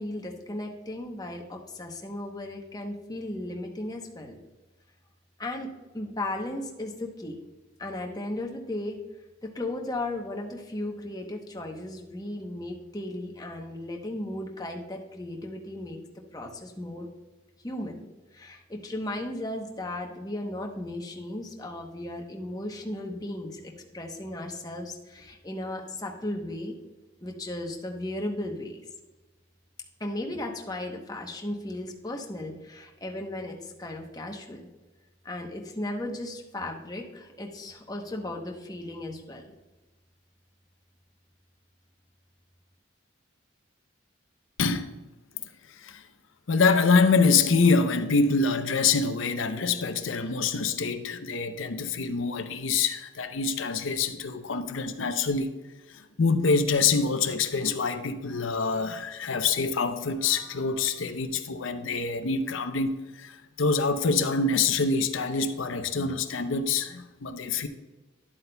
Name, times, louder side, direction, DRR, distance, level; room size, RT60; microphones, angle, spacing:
voice 1, 0.0-4.4 5.4-5.7 5.9-7.4 7.8-9.0 9.4-16.0 16.3-17.1 17.6-18.0 18.3-26.7 27.2-28.8 30.0-34.7 35.2-39.5, left 1 dB, 20° left, 0.9 m, -35 dB
voice 2, 44.6-44.9 45.8-46.0 46.5-55.5 55.9-62.9 63.2-67.7, left 4 dB, 85° left, 0.6 m, -25 dB
11.0 x 8.0 x 2.2 m
head